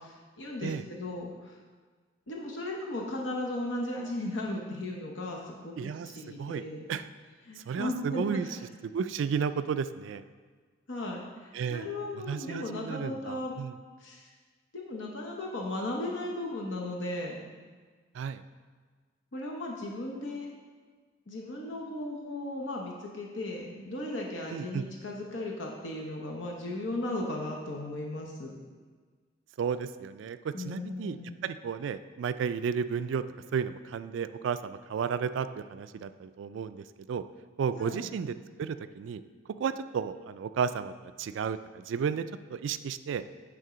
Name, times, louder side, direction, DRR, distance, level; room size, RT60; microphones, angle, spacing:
voice 1, 0.0-1.6 2.3-6.9 7.4-8.5 10.9-13.5 14.0-14.3 14.7-17.4 19.3-20.5 21.3-28.5 30.5-31.3 37.8-38.0, left 1 dB, 80° left, -1 dB, 0.9 m, -36 dB
voice 2, 5.8-6.1 6.4-6.6 6.9-7.1 7.7-8.5 8.8-10.2 11.5-11.9 12.2-13.7 18.1-18.4 24.5-24.8 29.6-33.2 33.5-37.2 37.6-38.3 38.6-39.2 39.6-42.3 42.5-43.2, right 6 dB, 75° right, 11 dB, 0.3 m, -33 dB
9.3 x 3.7 x 5.0 m, 1.5 s
head